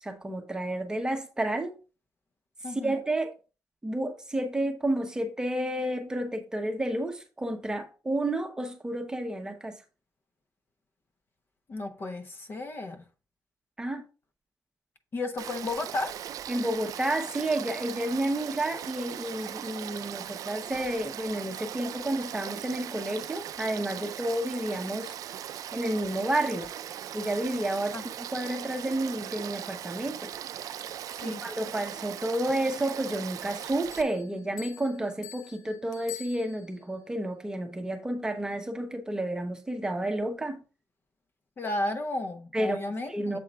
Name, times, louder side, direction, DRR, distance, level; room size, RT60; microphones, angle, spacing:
voice 1, 0.0-1.7 2.7-3.3 3.8-9.8 13.8-14.0 16.5-25.1 25.7-26.7 27.1-30.3 31.2-40.6 42.5-42.8 43.1-43.4, right 1 dB, 10° right, 0.9 m, -31 dB
voice 2, 2.6-3.0 11.7-13.0 15.1-16.2 27.9-28.1 31.2-31.4 41.6-43.4, left 2 dB, 40° left, 0.9 m, -33 dB
Frog / Stream, 15.4-34.0, right 10 dB, 75° right, 0.4 m, -39 dB
Bell, 33.9-37.0, left 12 dB, 80° left, 0.8 m, -46 dB
7.6 x 3.8 x 4.2 m
wide cardioid pair, 150°, 6 cm